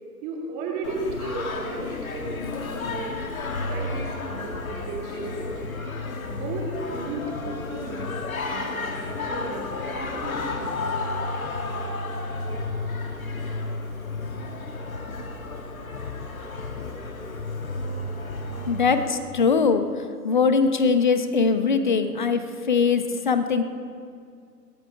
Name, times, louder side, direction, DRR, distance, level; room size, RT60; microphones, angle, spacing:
voice 1, 0.2-2.4 2.9-3.2 3.6-5.6 6.3-8.1 8.5-11.0, right 2 dB, 15° right, -1 dB, 1.9 m, -34 dB
Singing, 0.8-19.1, left 3 dB, 55° left, 2.0 m, -32 dB
voice 2, 18.7-23.6, left 5 dB, 30° left, 9 dB, 0.8 m, -22 dB
22.0 x 16.5 x 3.5 m, 2.2 s
figure-of-eight pair, 140°, 50 cm